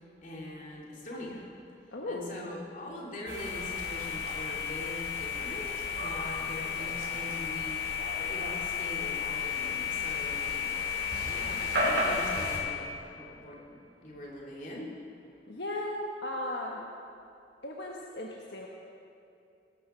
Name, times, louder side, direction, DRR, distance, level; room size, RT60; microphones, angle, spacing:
voice 1, 0.2-1.5 2.1-7.8 8.2-10.8 11.2-13.8 14.0-14.9, left 1 dB, 45° left, -3 dB, 2.8 m, -42 dB
voice 2, 1.9-2.3 15.5-16.9 17.6-18.7, left 1 dB, 75° left, -1 dB, 1.2 m, -36 dB
sound 1, 3.3-12.6, left 5 dB, 70° right, 4.3 m, -32 dB
18.5 x 12.5 x 4.5 m, 2.6 s
head